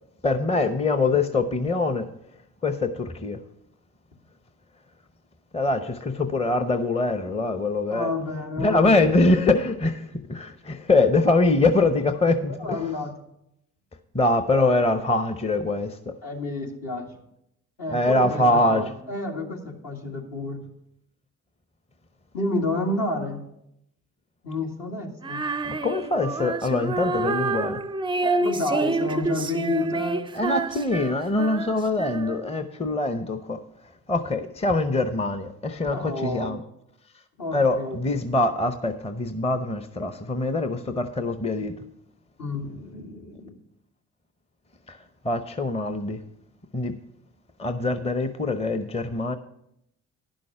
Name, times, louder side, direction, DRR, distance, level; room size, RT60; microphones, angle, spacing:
voice 1, 0.2-2.1 2.6-3.4 5.5-8.1 8.6-12.8 14.1-16.0 17.9-18.8 25.6-27.8 30.3-33.6 34.1-36.6 37.5-41.7 44.9-45.0 45.2-46.2 46.7-46.9 47.6-49.4, left 2 dB, 15° left, 9 dB, 0.7 m, -23 dB
voice 2, 7.9-9.2 12.6-13.1 16.2-17.1 17.8-20.6 22.3-23.4 24.4-25.4 28.2-30.2 35.9-36.6 37.4-38.0 42.4-43.6, left 2 dB, 60° left, 0 dB, 2.1 m, -30 dB
Female singing, 25.2-32.6, right 3 dB, 15° right, 0.4 m, -28 dB
11.0 x 6.3 x 5.7 m, 0.78 s
hypercardioid pair, 45°, 38 cm